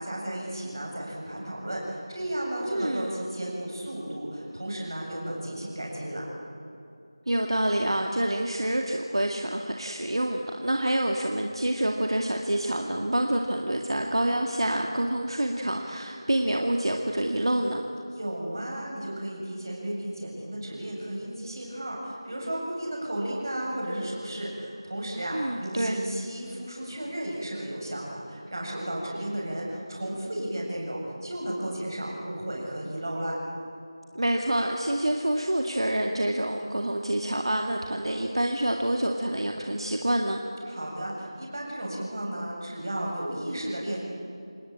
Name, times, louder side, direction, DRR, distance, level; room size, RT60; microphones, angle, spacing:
voice 1, 0.0-6.2 18.1-33.3 40.7-44.0, right 1 dB, 45° right, -2 dB, 7.3 m, -34 dB
voice 2, 2.6-3.2 7.3-17.8 25.3-26.0 34.1-40.4, right 1 dB, 70° right, 2 dB, 2.2 m, -27 dB
27.5 x 19.5 x 8.7 m, 2.6 s
figure-of-eight pair, 175°, 3 cm